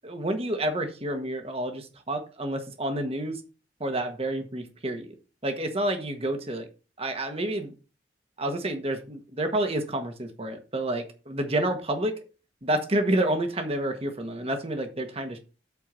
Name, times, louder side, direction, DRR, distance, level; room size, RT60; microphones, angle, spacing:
voice 1, 0.0-3.4 3.8-5.1 5.4-6.7 7.0-7.7 8.4-12.1 12.6-15.4, right 1 dB, 35° right, 6 dB, 1.5 m, -29 dB
8.4 x 4.5 x 6.9 m, 0.34 s
head